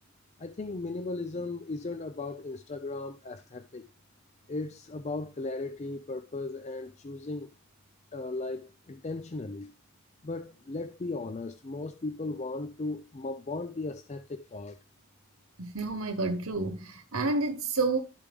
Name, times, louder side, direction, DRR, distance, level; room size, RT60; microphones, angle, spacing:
voice 1, 0.4-3.8 4.5-7.5 8.1-9.7 10.2-14.8, left 3 dB, 30° left, 0.4 m, -36 dB
voice 2, 15.6-18.0, right 3 dB, 70° right, 1.1 m, -29 dB
12.0 x 5.1 x 3.5 m
head